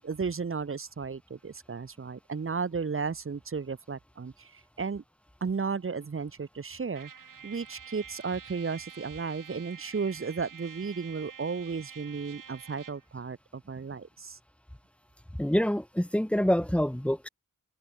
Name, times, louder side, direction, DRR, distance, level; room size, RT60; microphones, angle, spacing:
voice 1, 0.0-5.0 5.4-7.1 7.4-14.4, right 5 dB, 40° right, 2.1 m, -34 dB
Trumpet, 6.9-13.1, right 7 dB, 90° right, 7.9 m, -48 dB
voice 2, 15.4-17.3, equal, 5° left, 2.8 m, -26 dB
wide cardioid pair, 165°, 32 cm